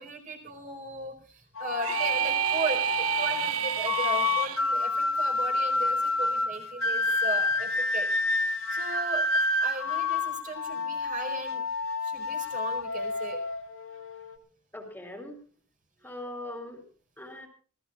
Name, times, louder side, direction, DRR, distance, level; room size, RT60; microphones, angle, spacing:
voice 1, 0.0-8.1 8.7-11.6 12.0-13.4 16.0-16.1, right 2 dB, 40° right, 4 dB, 4.7 m, -37 dB
sound 1, 1.6-14.4, left 3 dB, 65° left, 1.7 m, -29 dB
sound 2, 1.8-4.6, right 10 dB, 75° right, 0.6 m, -29 dB
voice 2, 14.7-15.4 16.0-16.8 17.2-17.5, left 1 dB, 10° left, 3 dB, 3.2 m, -40 dB
26.5 x 16.5 x 2.4 m, 0.40 s
head